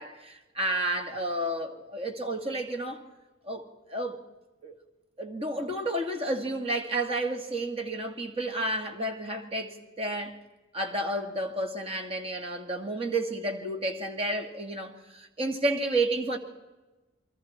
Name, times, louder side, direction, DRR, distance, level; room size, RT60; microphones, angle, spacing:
voice 1, 0.0-3.0 3.4-3.6 3.9-4.2 4.6-4.8 5.2-10.4 10.7-16.4, right 1 dB, 30° right, 2.3 m, -31 dB
29.0 x 23.0 x 4.4 m
head